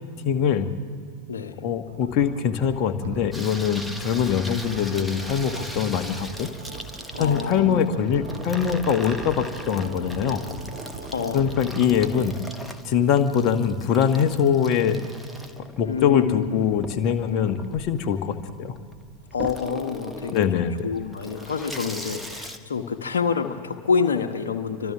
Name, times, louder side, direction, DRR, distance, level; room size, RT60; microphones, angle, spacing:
voice 1, 0.2-0.7 1.6-6.5 7.2-10.4 11.3-12.4 12.8-15.0 15.8-18.8 20.3-20.7, left 8 dB, 40° left, 7 dB, 1.4 m, -23 dB
voice 2, 1.3-1.6 7.1-8.0 11.1-11.5 15.8-16.6 17.3-17.5 19.3-24.9, left 6 dB, 65° left, 4 dB, 1.3 m, -27 dB
sound 1, 1.8-12.3, right 4 dB, 55° right, 2.2 m, -40 dB
Water tap faucet / Sink (filling or washing), 3.3-22.6, equal, ahead, 1.3 m, -40 dB
29.0 x 25.0 x 3.5 m, 2.3 s
figure-of-eight pair, 90°, 0 cm